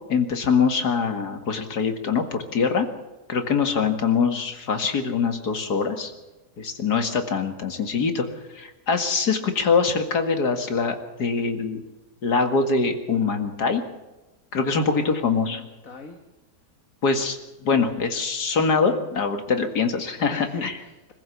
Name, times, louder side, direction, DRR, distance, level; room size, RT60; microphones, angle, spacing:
voice 1, 0.1-2.9 3.3-6.1 6.6-8.3 8.5-11.8 12.2-13.8 14.5-15.6 17.0-20.7, left 5 dB, 70° left, 6 dB, 2.5 m, -23 dB
voice 2, 14.6-16.2 17.7-18.1 20.3-21.1, left 4 dB, 55° left, 3 dB, 2.2 m, -39 dB
25.5 x 15.0 x 7.1 m, 1.1 s
omnidirectional pair, 1.8 m